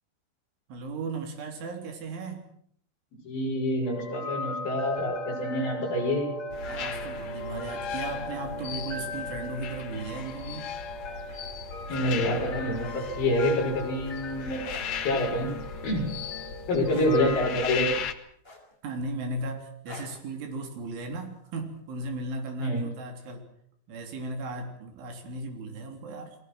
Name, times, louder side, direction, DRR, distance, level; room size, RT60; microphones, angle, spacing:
voice 1, 0.7-2.5 6.6-10.7 18.8-23.4 23.9-26.4, right 2 dB, 70° right, 4 dB, 5.9 m, -36 dB
voice 2, 3.2-6.3 11.9-14.6 15.0-15.5 15.8-16.1 16.7-17.9 22.6-22.8, left 1 dB, 45° left, 1 dB, 7.7 m, -27 dB
sound 1, 3.9-17.5, left 1 dB, 30° left, 7.7 m, -39 dB
sound 2, 6.5-18.1, left 7 dB, 75° left, 1.5 m, -37 dB
sound 3, 14.6-14.9 16.9-17.2 18.4-18.9 19.9-20.2 21.6-21.8, left 2 dB, 10° left, 4.6 m, -45 dB
30.0 x 21.5 x 6.2 m, 0.64 s
omnidirectional pair, 5.8 m